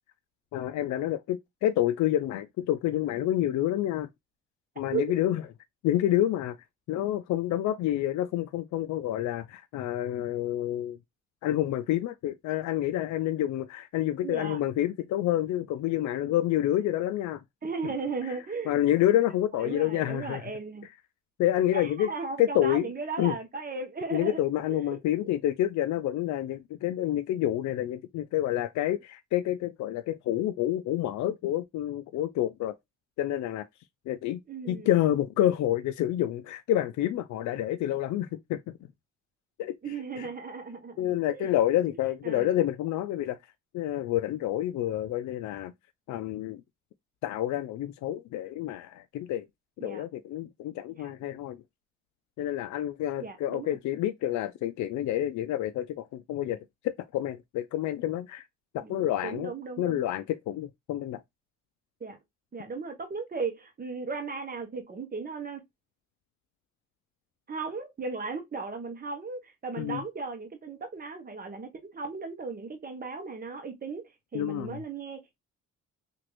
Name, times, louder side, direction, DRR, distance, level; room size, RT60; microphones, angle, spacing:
voice 1, 0.5-4.1 4.8-5.4 5.8-6.6 6.9-11.0 11.4-17.4 17.8-17.9 18.3-18.4 18.7-20.4 21.4-22.1 22.4-22.9 23.2-23.4 24.1-32.7 33.2-33.7 34.1-34.4 34.6-38.6 39.6-39.8 40.2-40.3 41.0-43.4 43.7-45.7 46.1-46.6 47.2-49.5 49.8-51.6 52.4-56.6 56.8-58.4 58.7-59.5 59.8-61.2 69.8-70.0 74.3-74.8, left 12 dB, 70° left, 0.4 m, -28 dB
voice 2, 14.2-14.6 17.6-18.8 19.6-20.9 21.7-24.4 24.7-25.3 34.5-34.9 39.8-41.5 41.9-42.0 42.2-42.6 49.8-50.0 51.0-51.1 53.2-53.8 58.8-59.0 59.2-60.0 62.0-62.2 62.5-65.6 67.5-75.4, right 4 dB, 30° right, 1.0 m, -36 dB
3.0 x 2.5 x 3.0 m
cardioid pair, 90°, 30 cm